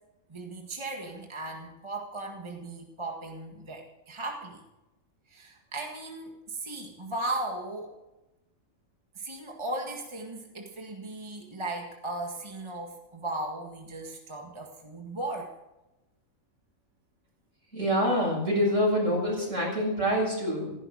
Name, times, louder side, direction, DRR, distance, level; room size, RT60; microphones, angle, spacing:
voice 1, 0.3-4.6 5.3-7.9 9.2-15.5, right 2 dB, 20° right, 1 dB, 1.8 m, -37 dB
voice 2, 17.7-20.7, equal, 60° right, -2 dB, 7.4 m, -26 dB
17.0 x 15.0 x 5.0 m, 0.99 s
omnidirectional pair, 1.5 m